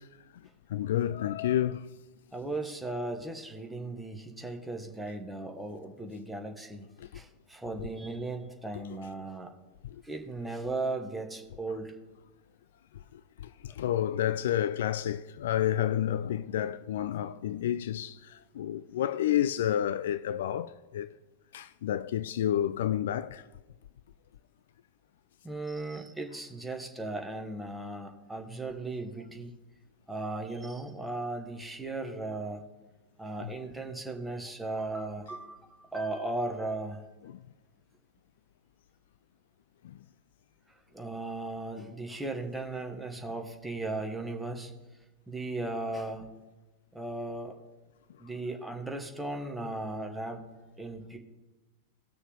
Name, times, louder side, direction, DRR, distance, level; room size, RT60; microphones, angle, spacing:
voice 1, 0.7-1.9 7.0-7.1 13.1-21.1 21.5-23.4 37.2-37.3 39.8-40.0, left 11 dB, 60° left, 0.3 m, -30 dB
voice 2, 2.3-6.9 7.1-9.5 10.0-11.9 25.4-29.6 30.1-32.6 33.2-35.6 35.9-37.0 40.9-44.7 45.3-46.3 46.9-47.6 48.2-50.5 50.8-51.2, right 2 dB, 5° right, 1.3 m, -36 dB
19.0 x 6.4 x 3.1 m
figure-of-eight pair, 95°, 0 cm